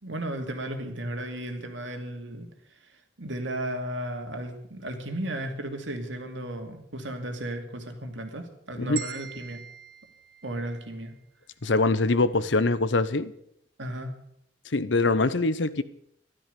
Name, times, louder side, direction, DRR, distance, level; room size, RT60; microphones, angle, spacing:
voice 1, 0.0-2.5 3.2-9.6 10.4-11.1 13.8-14.1, right 1 dB, 85° right, 2.5 m, -34 dB
sound 1, 9.0-11.1, right 7 dB, 60° right, 2.5 m, -42 dB
voice 2, 11.6-13.3 14.7-15.8, left 3 dB, 75° left, 0.9 m, -23 dB
13.5 x 12.5 x 6.8 m
head